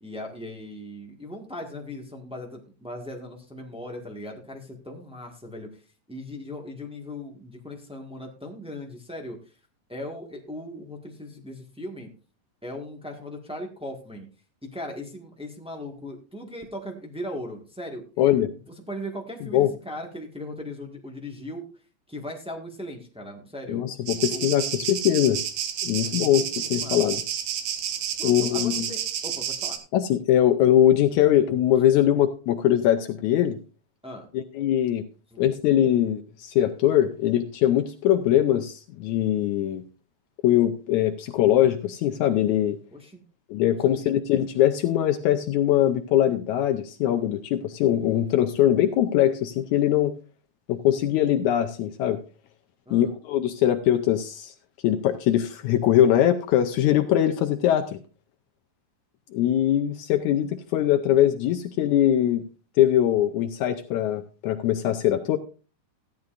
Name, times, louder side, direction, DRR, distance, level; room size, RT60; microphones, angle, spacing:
voice 1, 0.0-5.7 6.1-9.4 9.9-12.1 12.6-14.3 14.6-21.8 22.1-23.8 24.3-24.5 26.0-27.1 28.2-29.8 31.8-31.9 34.0-34.3 35.3-35.5 42.9-43.2 43.8-44.2 52.8-53.1, left 1 dB, 5° right, 0 dB, 0.4 m, -38 dB
voice 2, 18.2-18.5 19.5-19.7 23.7-25.4 25.8-26.4 26.7-27.2 28.2-28.9 29.9-33.6 34.3-35.0 35.4-39.8 40.4-42.8 43.5-50.1 50.7-52.2 52.9-54.5 54.8-58.0 59.3-62.4 62.8-65.4, left 11 dB, 75° left, 6 dB, 2.0 m, -22 dB
sound 1, 24.1-29.8, right 9 dB, 75° right, 2.5 m, -30 dB
15.0 x 11.0 x 2.5 m, 0.35 s
omnidirectional pair, 3.5 m